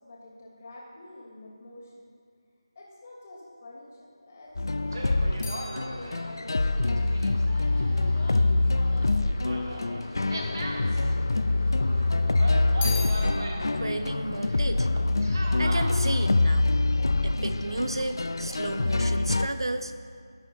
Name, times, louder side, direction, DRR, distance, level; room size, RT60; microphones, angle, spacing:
voice 1, 0.0-2.0 2.7-6.9 7.5-10.8, left 1 dB, 30° left, -4 dB, 2.8 m, -47 dB
sound 1, 4.4-8.9 9.6-10.5 10.7-11.9 12.2-15.7 16.0-16.5, left 4 dB, 15° left, 1.3 m, -43 dB
sound 2, 4.6-19.5, left 2 dB, 55° left, 0.4 m, -25 dB
sound 3, 4.9-16.2, right 1 dB, 45° right, 1.4 m, -41 dB
voice 2, 13.7-14.9 15.6-16.7 17.2-19.9, right 2 dB, 65° right, 9 dB, 0.8 m, -32 dB
17.5 x 8.8 x 2.6 m, 2.2 s
figure-of-eight pair, 160°, 3 cm